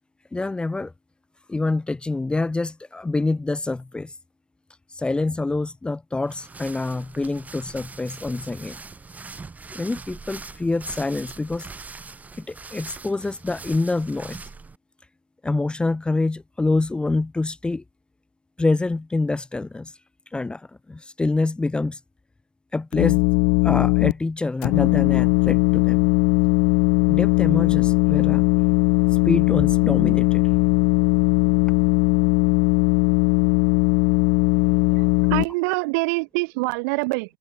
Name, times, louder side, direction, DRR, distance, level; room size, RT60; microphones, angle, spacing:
voice 1, 0.3-0.9 1.5-4.1 4.9-8.8 9.7-11.7 12.4-14.4 15.4-17.8 18.6-19.9 20.3-22.0 22.7-23.2 23.6-26.1 27.0-28.4 29.2-30.5 34.9-35.1, left 2 dB, 10° left, 1.4 m, -26 dB
sound 1, 6.2-14.8, right 4 dB, 15° right, 6.9 m, -41 dB
sound 2, 22.9-24.1 24.6-35.4, left 40 dB or more, 60° left, 1.3 m, -19 dB
voice 2, 34.5-37.4, right 30 dB, 60° right, 3.2 m, -26 dB
supercardioid pair, 125°, 11 cm